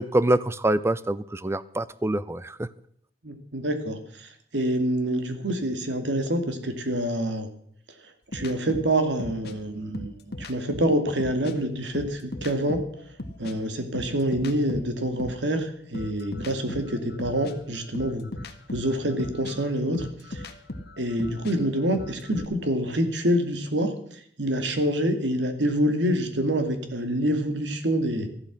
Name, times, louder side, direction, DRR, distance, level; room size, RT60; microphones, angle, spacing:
voice 1, 0.0-2.7, right 1 dB, 15° right, 16 dB, 0.6 m, -25 dB
voice 2, 3.2-7.5 8.3-12.8 13.4-18.3 18.7-20.4 21.0-23.9 24.4-28.3, right 1 dB, 80° right, 7 dB, 2.4 m, -26 dB
sound 1, 8.3-11.6 11.9-15.5 15.9-22.5, left 1 dB, 60° left, 1.7 m, -38 dB
14.0 x 12.0 x 6.1 m, 0.65 s
head